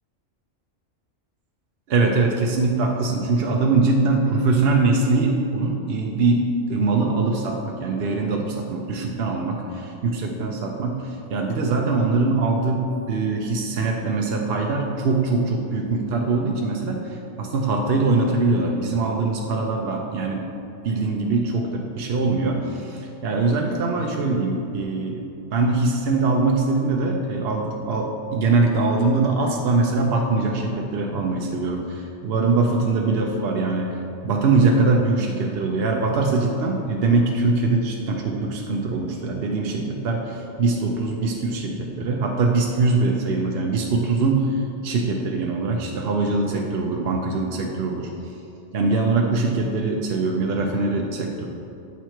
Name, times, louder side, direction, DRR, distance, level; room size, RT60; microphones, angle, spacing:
voice 1, 1.9-6.4 6.7-20.4 20.8-25.2 25.5-34.0 34.2-48.1 48.7-51.5, right 3 dB, 60° right, 1 dB, 0.7 m, -22 dB
8.1 x 4.6 x 4.4 m, 2.7 s
omnidirectional pair, 1.3 m